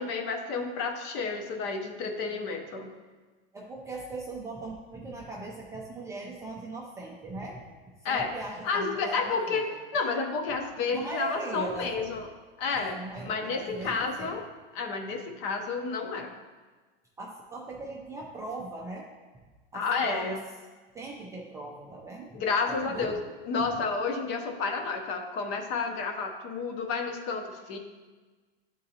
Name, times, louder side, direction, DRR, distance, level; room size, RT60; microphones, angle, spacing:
voice 1, 0.0-2.9 8.0-8.3 8.6-9.7 9.9-12.3 12.6-12.9 13.2-14.4 14.7-16.3 19.7-20.4 22.3-23.2 23.4-27.8, left 4 dB, 40° left, 4 dB, 0.8 m, -30 dB
voice 2, 3.5-7.6 8.0-9.6 10.9-12.1 12.8-14.4 17.2-19.1 19.7-20.4 20.9-22.4 22.7-23.2 23.6-23.7, right 2 dB, 10° right, -4 dB, 0.4 m, -39 dB
10.5 x 3.8 x 2.8 m, 1.3 s
supercardioid pair, 145°, 30 cm